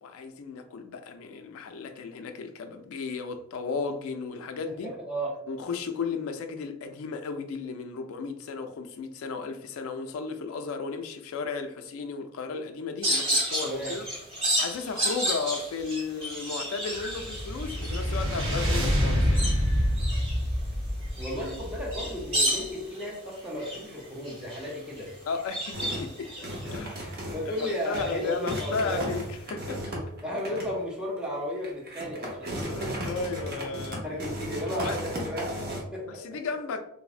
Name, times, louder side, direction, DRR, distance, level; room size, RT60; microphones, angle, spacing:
voice 1, 0.0-4.9 5.5-14.1 14.6-19.5 25.3-27.0 27.4-29.8 32.6-34.0 34.8-35.0 36.1-36.8, left 4 dB, 75° left, 0.3 m, -34 dB
voice 2, 4.8-5.4 13.6-14.0 21.2-25.1 26.6-29.1 30.2-33.0 34.0-36.4, equal, 5° right, 0.5 m, -34 dB
sound 1, 13.0-27.1 27.5-29.4, right 1 dB, 25° right, 1.4 m, -33 dB
sound 2, 16.9-22.4, equal, 65° right, 0.9 m, -27 dB
sound 3, 25.7-26.1 26.4-27.6 27.9-28.1 28.5-30.8 31.2-31.3 31.6-35.8, equal, 45° right, 0.7 m, -35 dB
3.2 x 2.0 x 2.4 m
head